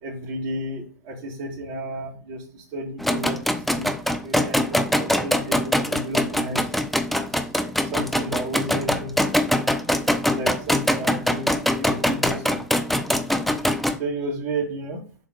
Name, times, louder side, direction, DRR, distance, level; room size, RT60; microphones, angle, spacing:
voice 1, 0.0-3.9 4.2-6.7 7.1-7.5 7.8-9.2 10.3-12.6 14.0-15.0, right 1 dB, 40° right, -2 dB, 2.0 m, -32 dB
sound 1, 3.0-14.0, left 1 dB, ahead, 0.6 m, -23 dB
7.3 x 3.0 x 5.0 m, 0.40 s
figure-of-eight pair, 105°, 10 cm